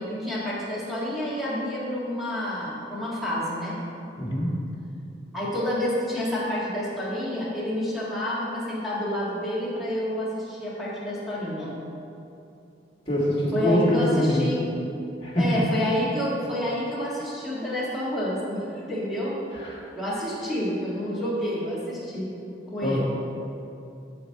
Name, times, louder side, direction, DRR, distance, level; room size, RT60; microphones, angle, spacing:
voice 1, 0.0-3.8 5.3-11.7 13.5-14.6 15.4-19.4 19.9-22.3 22.7-23.0, left 1 dB, ahead, -8 dB, 1.7 m, -29 dB
voice 2, 4.2-4.5 13.1-14.6 15.2-15.6 19.5-19.7 22.8-23.0, equal, 30° left, -5 dB, 1.6 m, -24 dB
11.5 x 4.3 x 4.6 m, 2.7 s
head